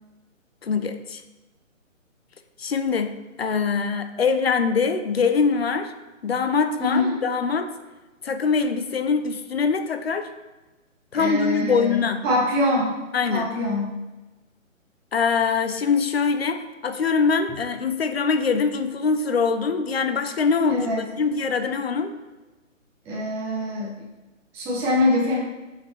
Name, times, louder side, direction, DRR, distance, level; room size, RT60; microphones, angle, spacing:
voice 1, 0.6-1.2 2.6-3.1 3.4-5.9 6.2-7.7 8.2-10.3 11.1-12.2 13.1-13.5 15.1-22.1, left 5 dB, 50° left, 8 dB, 0.9 m, -23 dB
voice 2, 6.8-7.2 11.1-12.9 13.3-13.9 20.7-21.0 23.0-23.9 24.5-25.4, left 1 dB, 5° right, -7 dB, 0.9 m, -24 dB
7.3 x 6.0 x 4.5 m, 1.1 s
figure-of-eight pair, 150°, 40 cm